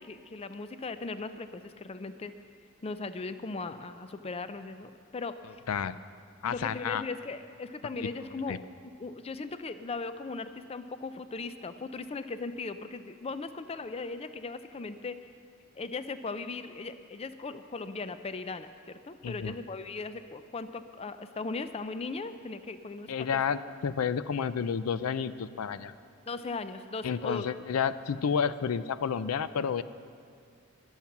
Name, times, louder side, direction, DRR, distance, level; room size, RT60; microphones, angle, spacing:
voice 1, 0.0-2.3 2.8-5.6 6.5-8.6 9.0-15.2 15.8-23.4 26.3-27.4, left 3 dB, 30° left, 11 dB, 0.4 m, -38 dB
voice 2, 6.4-7.0 8.0-8.1 8.5-8.6 19.2-19.6 23.1-25.9 27.0-29.8, left 7 dB, 85° left, 14 dB, 0.4 m, -30 dB
21.5 x 7.3 x 5.9 m, 2.2 s
head